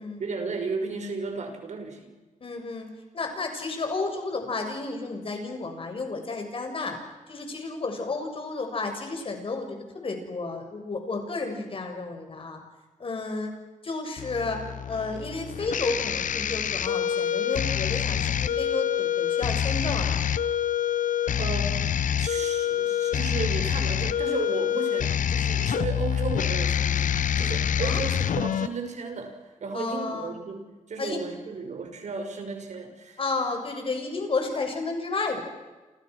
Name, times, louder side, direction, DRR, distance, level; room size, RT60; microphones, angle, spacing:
voice 1, 0.2-2.1 21.4-21.8 22.2-33.2, right 4 dB, 65° right, 5 dB, 5.9 m, -34 dB
voice 2, 2.4-2.9 3.1-7.0 7.3-12.6 13.0-13.5 13.8-14.6 14.9-20.2 27.8-28.0 29.7-30.4 31.0-31.2 33.2-35.4, left 3 dB, 45° left, 4 dB, 6.6 m, -32 dB
sound 1, 14.2-28.7, left 9 dB, 90° left, 0.9 m, -26 dB
29.0 x 29.0 x 6.3 m, 1.2 s
wide cardioid pair, 130°, 13 cm